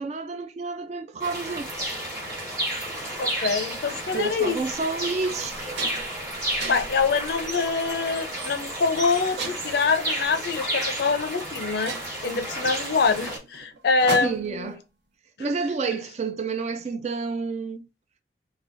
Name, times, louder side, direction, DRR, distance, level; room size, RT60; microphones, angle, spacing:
voice 1, 0.0-2.0 4.1-5.8 14.2-14.8 15.4-17.8, right 4 dB, 35° right, 0.3 m, -30 dB
sound 1, 1.2-13.4, right 1 dB, 20° right, 1.3 m, -32 dB
voice 2, 3.2-4.6 6.7-11.9 12.2-14.7, left 4 dB, 60° left, 0.4 m, -25 dB
sound 2, 4.5-4.6 5.1-5.2 5.5-6.2 6.6-7.1 7.7-8.0 9.4-9.9 11.0-11.1 11.5-11.6 11.9-14.6, right 3 dB, 70° right, 0.7 m, -35 dB
3.4 x 2.2 x 2.5 m
head